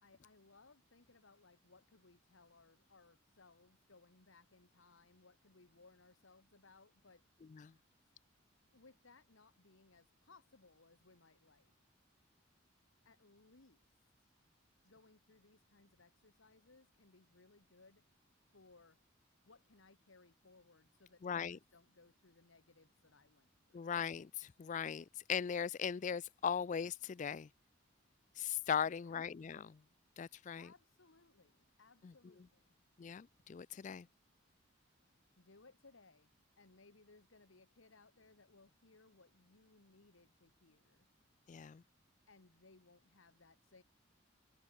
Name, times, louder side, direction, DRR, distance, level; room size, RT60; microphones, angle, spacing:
voice 1, 0.0-7.3 8.7-11.7 13.0-14.3 14.8-18.0 18.5-19.0 19.4-23.8 28.8-29.3 30.6-32.7 35.3-41.1 42.3-43.8, left 3 dB, 80° left, 1.6 m, -65 dB
voice 2, 21.2-21.6 23.7-27.5 28.4-29.8 30.2-30.7 33.0-34.1 41.5-41.8, left 7 dB, 40° left, 0.3 m, -39 dB
head